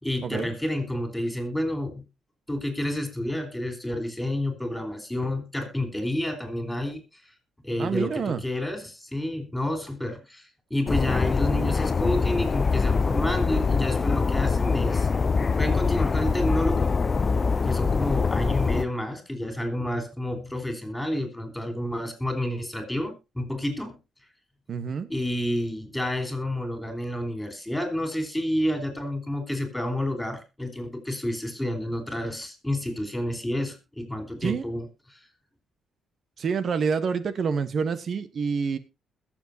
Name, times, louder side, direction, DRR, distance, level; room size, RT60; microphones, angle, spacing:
voice 1, 0.0-2.0 2.5-7.0 7.6-15.1 15.6-16.9 17.7-24.0 25.1-34.8 35.1-35.2, left 1 dB, 5° left, 7 dB, 4.2 m, -29 dB
voice 2, 7.8-8.4 24.7-25.1 34.4-34.7 36.4-38.8, right 5 dB, 50° right, 13 dB, 1.0 m, -27 dB
sound 1, 10.9-18.8, left 4 dB, 35° left, 0.5 m, -24 dB
21.0 x 7.3 x 2.7 m, 0.25 s
cardioid pair, 90°, 0 cm